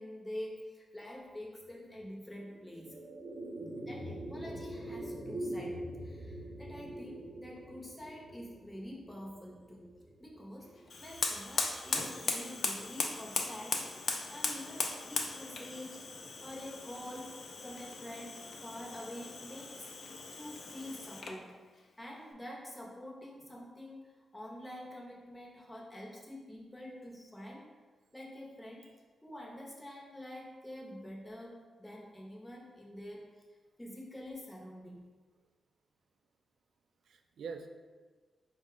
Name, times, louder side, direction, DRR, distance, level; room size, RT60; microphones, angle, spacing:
voice 1, 0.0-3.0 3.8-9.8 10.2-10.7 11.0-16.0 16.4-17.4 17.6-21.6 22.0-27.6 28.1-28.9 29.2-33.2 33.8-35.0, left 1 dB, 10° left, -3 dB, 0.7 m, -47 dB
sound 1, 2.3-12.8, right 1 dB, 30° right, 0.7 m, -44 dB
voice 2, 3.3-3.9 28.8-28.9 37.1-37.7, right 5 dB, 85° right, 5 dB, 0.3 m, -47 dB
Fire, 10.9-21.4, left 4 dB, 55° left, 0.4 m, -38 dB
4.7 x 2.1 x 3.8 m, 1.4 s
wide cardioid pair, 125°, 0 cm